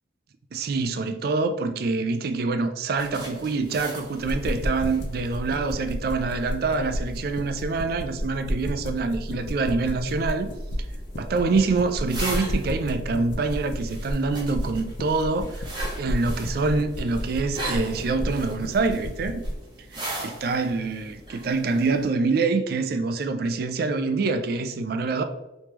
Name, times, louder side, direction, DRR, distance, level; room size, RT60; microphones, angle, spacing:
voice 1, 0.5-10.5 11.2-19.4 20.2-25.2, right 3 dB, 50° right, 0.3 m, -26 dB
sound 1, 2.9-7.8 9.8-22.1, right 2 dB, 25° right, 0.9 m, -40 dB
sound 2, 4.2-19.6, equal, 65° left, 0.6 m, -32 dB
3.4 x 3.1 x 2.9 m
head